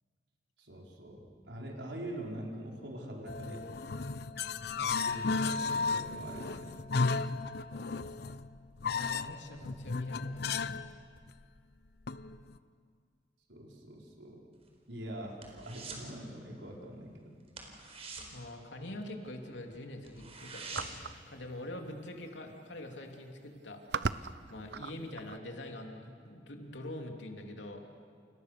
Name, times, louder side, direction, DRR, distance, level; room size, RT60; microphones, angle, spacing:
voice 1, 0.6-3.6 4.7-6.7 13.5-14.4 14.9-17.3, right 1 dB, 90° right, -1 dB, 5.1 m, -44 dB
sound 1, 3.3-10.9 11.2-11.3 12.1-12.6, left 4 dB, 60° left, 0.8 m, -34 dB
voice 2, 8.9-10.7 18.3-27.9, left 1 dB, 85° left, 2 dB, 3.1 m, -44 dB
sound 2, 14.5-16.1 16.4-16.7 17.0-17.1 17.5-19.4 19.7-19.8 20.0-21.2 21.5-21.6, right 4 dB, 35° right, 4.3 m, -45 dB
sound 3, 20.7-21.2 22.3-22.4 22.6-23.0 23.6-25.4, right 5 dB, 65° right, 0.7 m, -37 dB
30.0 x 29.5 x 6.8 m, 2.1 s
head